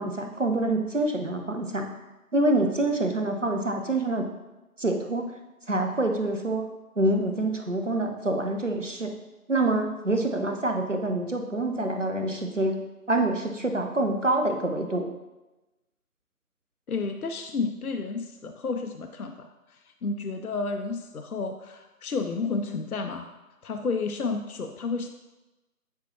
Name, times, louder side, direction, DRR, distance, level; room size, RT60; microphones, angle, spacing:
voice 1, 0.0-1.9 2.3-4.3 4.8-5.3 5.7-6.7 7.0-9.1 9.5-12.8 13.1-15.1, right 2 dB, 55° right, 4 dB, 0.8 m, -26 dB
voice 2, 16.9-23.3 23.6-25.1, left 4 dB, 70° left, 6 dB, 0.6 m, -31 dB
9.5 x 4.4 x 2.8 m, 1.1 s
figure-of-eight pair, 175°, 46 cm